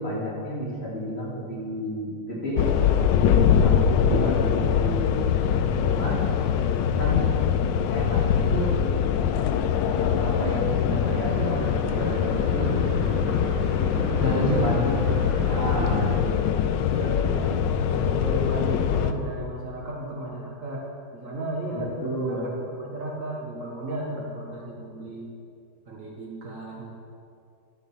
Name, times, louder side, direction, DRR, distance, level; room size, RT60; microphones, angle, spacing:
voice 1, 0.0-2.7 3.6-6.2 7.0-7.3 7.9-8.8 9.8-12.8 14.2-15.1 15.5-16.5 21.7-22.5, equal, 35° left, -6 dB, 2.5 m, -30 dB
sound 1, 2.6-19.1, left 8 dB, 85° left, 1.3 m, -23 dB
sound 2, 11.1-16.2, left 1 dB, 50° left, 2.0 m, -32 dB
voice 2, 14.1-14.6 15.6-16.1 16.9-20.8 21.1-22.0 22.3-25.3 25.9-26.9, right 1 dB, 50° right, -3 dB, 1.6 m, -33 dB
11.5 x 5.1 x 6.8 m, 2.5 s
omnidirectional pair, 1.9 m